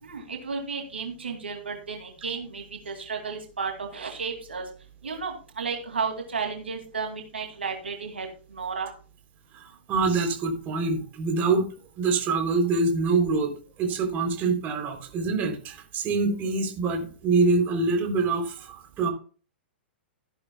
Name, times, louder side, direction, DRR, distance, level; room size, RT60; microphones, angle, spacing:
voice 1, 0.0-4.6 5.0-8.9, right 5 dB, 80° right, 3 dB, 2.6 m, -33 dB
voice 2, 9.5-11.7 12.0-13.5 13.8-19.1, right 3 dB, 30° right, 4 dB, 3.5 m, -25 dB
14.5 x 11.0 x 2.4 m, 0.39 s
figure-of-eight pair, 110°, 6 cm